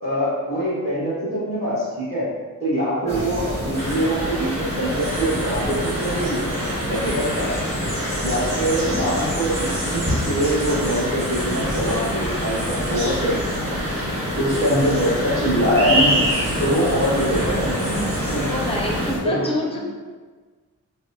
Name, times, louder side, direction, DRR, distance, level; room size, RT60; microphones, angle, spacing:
voice 1, 0.0-2.3 2.6-6.4 6.8-7.5 8.2-13.8 14.3-16.2 16.6-18.5 19.2-19.5 19.7-19.8, equal, 40° right, -12 dB, 1.5 m, -23 dB
sound 1, 3.1-19.2, equal, 20° right, 1.5 m, -27 dB
sound 2, 3.8-19.1, equal, 80° right, 1.1 m, -29 dB
voice 2, 6.9-7.2 18.5-19.8, left 1 dB, 15° left, -2 dB, 0.6 m, -27 dB
5.7 x 2.0 x 2.6 m, 1.4 s
wide cardioid pair, 165°, 34 cm